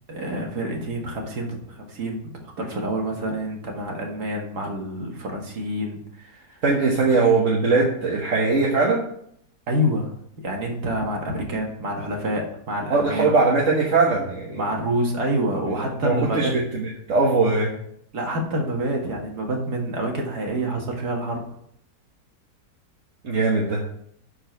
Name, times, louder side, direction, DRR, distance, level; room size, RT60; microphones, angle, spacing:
voice 1, 0.1-6.5 9.7-10.1 10.4-13.3 14.5-16.5 18.1-21.4, right 1 dB, 80° right, 1 dB, 2.3 m, -27 dB
voice 2, 6.6-9.0 12.9-14.6 16.0-17.7 23.2-23.8, right 3 dB, 55° right, -3 dB, 1.5 m, -20 dB
11.0 x 4.8 x 4.5 m, 0.69 s
omnidirectional pair, 1.7 m